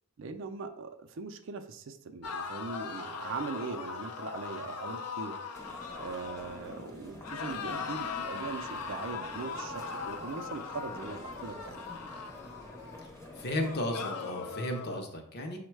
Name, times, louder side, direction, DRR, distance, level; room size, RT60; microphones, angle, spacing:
voice 1, 0.2-5.3 5.9-11.8, right 4 dB, 55° right, 7 dB, 0.4 m, -40 dB
sound 1, 2.2-6.9 7.2-13.1 13.6-15.0, left 5 dB, 90° left, 0.5 m, -40 dB
sound 2, 5.5-13.8, left 1 dB, 15° left, 0.6 m, -48 dB
voice 2, 13.4-15.6, left 1 dB, 45° left, 4 dB, 0.6 m, -34 dB
5.3 x 2.1 x 4.5 m, 0.69 s
head